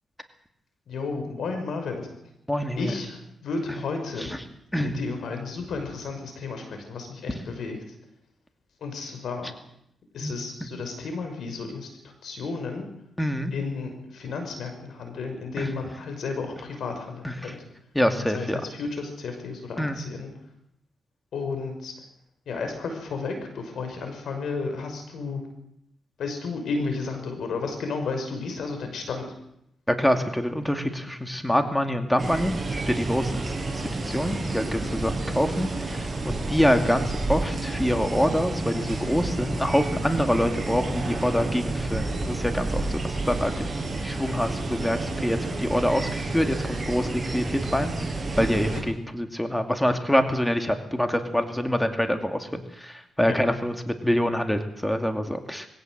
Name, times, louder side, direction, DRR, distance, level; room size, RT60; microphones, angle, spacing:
voice 1, 0.9-2.0 2.8-4.3 4.8-7.8 8.8-9.5 10.1-11.9 12.2-12.8 13.5-17.5 18.2-20.3 21.3-21.9 22.5-25.4 26.2-29.3 48.7-48.8 53.3-53.4, left 4 dB, 75° left, 6 dB, 5.9 m, -32 dB
voice 2, 2.5-2.9 3.7-3.8 4.2-4.4 4.7-4.9 10.2-10.3 10.6-10.7 13.2-13.5 15.6-15.7 17.2-17.6 17.9-18.6 19.8-20.0 29.9-32.6 32.9-33.5 33.8-43.8 44.0-47.9 48.3-55.7, equal, 5° left, 6 dB, 2.3 m, -26 dB
sound 1, 32.2-48.8, right 2 dB, 25° right, 6.3 m, -30 dB
22.0 x 16.5 x 7.9 m, 0.77 s
cardioid pair, 75°, 0 cm